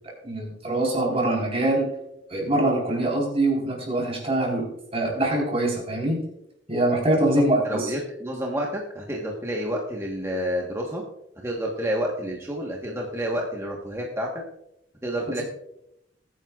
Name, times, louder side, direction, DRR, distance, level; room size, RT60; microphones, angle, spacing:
voice 1, 0.2-1.9 2.3-6.2 6.7-7.9, right 1 dB, 30° right, -1 dB, 4.1 m, -24 dB
voice 2, 7.6-11.0 11.4-14.3 15.0-15.4, equal, 15° right, -1 dB, 1.3 m, -29 dB
21.5 x 9.4 x 2.4 m, 0.80 s
head